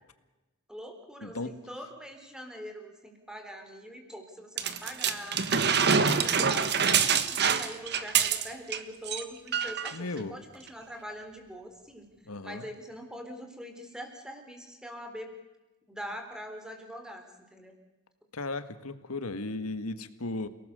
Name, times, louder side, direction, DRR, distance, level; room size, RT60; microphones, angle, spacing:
voice 1, 0.7-12.1 12.4-15.3 15.9-17.8, equal, 5° right, 4 dB, 3.8 m, -43 dB
voice 2, 1.2-1.6 9.9-10.4 12.3-12.7 18.3-20.5, left 2 dB, 85° left, 11 dB, 1.7 m, -36 dB
sound 1, 4.6-8.8 9.1-9.2 9.5-10.0 10.7-10.8, right 6 dB, 50° right, 1.6 m, -25 dB
29.5 x 18.5 x 6.9 m, 1.1 s
head